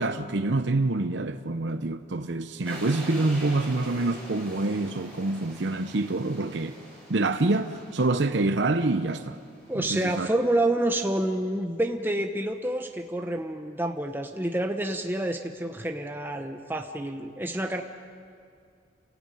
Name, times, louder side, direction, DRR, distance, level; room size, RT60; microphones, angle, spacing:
voice 1, 0.0-6.8 7.1-9.4 9.7-10.3, right 2 dB, 65° right, 0.8 m, -26 dB
sound 1, 2.6-9.8, right 1 dB, 5° left, 7.5 m, -44 dB
voice 2, 9.7-17.8, right 1 dB, 10° right, 0.9 m, -28 dB
28.0 x 17.0 x 9.2 m
head